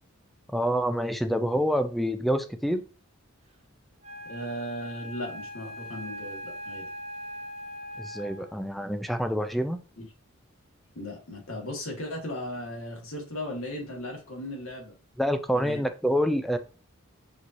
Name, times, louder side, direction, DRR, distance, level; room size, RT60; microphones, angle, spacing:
voice 1, 0.5-2.8 8.0-9.8 15.2-16.6, equal, ahead, 8 dB, 0.4 m, -27 dB
Wind instrument woodwind instrument, 4.0-8.6, equal, 30° right, 0.7 m, -40 dB
voice 2, 4.2-6.9 10.0-10.1 10.9-14.9 15.5-15.8, left 1 dB, 75° left, 0 dB, 1.6 m, -37 dB
6.2 x 2.8 x 2.5 m, 0.34 s
head